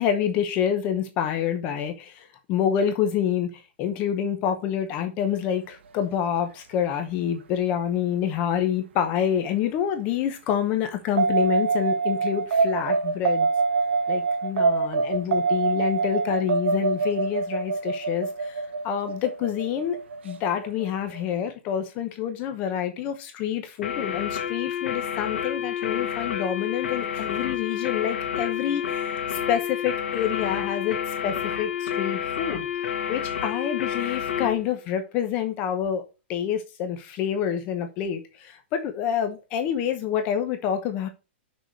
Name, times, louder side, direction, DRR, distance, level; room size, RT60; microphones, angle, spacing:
voice 1, 0.0-3.5 3.8-13.5 14.1-20.0 20.2-29.1 29.5-31.0 31.2-32.7 33.1-36.0 36.3-41.1, left 9 dB, 25° left, 0.9 m, -27 dB
sound 1, 11.2-21.3, right 4 dB, 70° right, 1.1 m, -25 dB
sound 2, 23.8-34.6, left 9 dB, 80° left, 1.9 m, -29 dB
6.3 x 5.0 x 6.2 m
hypercardioid pair, 170°, 6 cm